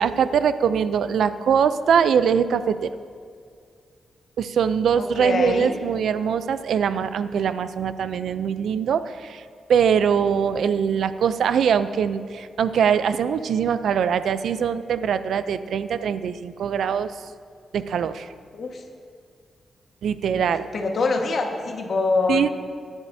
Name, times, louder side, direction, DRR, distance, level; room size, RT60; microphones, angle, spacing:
voice 1, 0.0-2.9 4.4-9.4 9.7-17.2 17.7-18.3 20.0-20.7 22.3-22.5, right 7 dB, 80° right, 13 dB, 0.4 m, -22 dB
voice 2, 5.0-5.7 18.5-18.8 20.4-22.5, left 3 dB, 60° left, 2 dB, 1.4 m, -25 dB
17.5 x 10.5 x 2.7 m, 2.2 s
cardioid pair, 100°, 0 cm